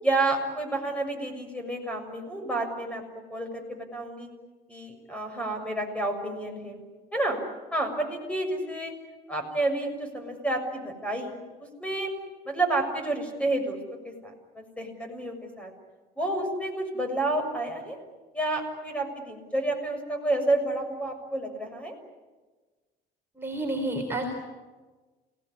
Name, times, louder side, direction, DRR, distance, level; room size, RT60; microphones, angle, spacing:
voice 1, 0.0-3.0 3.3-4.3 4.7-6.8 7.1-7.4 7.7-8.9 9.3-11.3 11.8-12.1 12.4-13.8 14.0-15.7 16.2-18.0 18.3-21.9, right 2 dB, 5° left, 5 dB, 6.8 m, -30 dB
voice 2, 23.4-24.2, right 2 dB, 15° right, -1 dB, 4.3 m, -30 dB
29.5 x 18.5 x 9.9 m, 1.3 s
cardioid pair, 120°, 17 cm